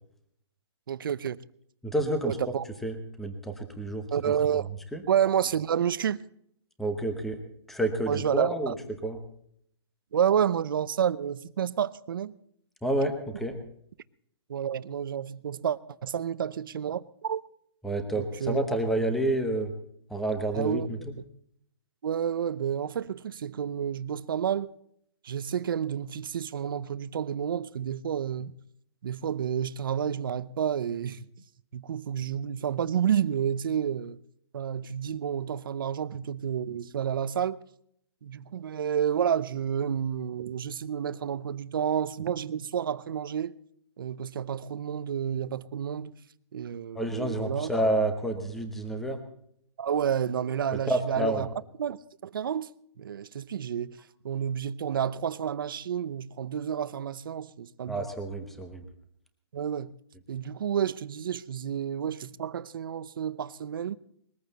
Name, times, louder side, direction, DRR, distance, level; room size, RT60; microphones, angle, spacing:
voice 1, 0.9-1.4 2.2-2.6 4.1-4.7 5.1-6.2 8.1-8.7 10.1-12.4 14.5-17.4 18.2-18.6 20.5-20.9 22.0-24.7 25.2-28.5 29.0-31.3 31.7-34.2 34.5-37.6 38.2-43.5 44.0-46.1 46.5-47.7 49.8-51.5 51.8-54.0 54.2-58.0 59.5-59.9 60.3-63.9, right 8 dB, 50° right, 0.7 m, -30 dB
voice 2, 1.8-2.4 2.8-4.3 4.9-5.0 6.8-7.4 7.7-8.7 9.0-9.2 12.8-13.6 17.8-19.7 20.1-21.1 46.9-49.2 50.9-51.5 57.9-58.9, right 1 dB, ahead, 0.9 m, -29 dB
21.0 x 14.5 x 4.1 m
hypercardioid pair, 175°, 15 cm